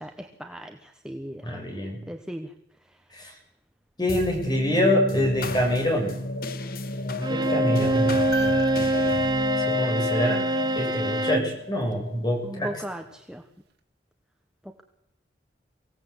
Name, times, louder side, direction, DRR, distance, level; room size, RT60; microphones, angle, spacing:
voice 1, 0.0-1.4 2.1-2.5 10.3-10.9 12.4-13.4, equal, 5° right, 4 dB, 1.2 m, -37 dB
voice 2, 1.4-2.0 3.1-3.3 4.0-6.2 7.1-8.3 9.7-10.4 10.8-12.7, left 1 dB, 25° left, 2 dB, 6.2 m, -25 dB
sound 1, 4.1-12.8, left 4 dB, 55° left, 1.2 m, -32 dB
Bowed string instrument, 7.2-11.5, right 2 dB, 25° right, 1.0 m, -25 dB
sound 2, 8.3-10.6 12.7-12.8, right 1 dB, 70° right, 2.9 m, -38 dB
24.0 x 16.5 x 8.1 m, 0.81 s
head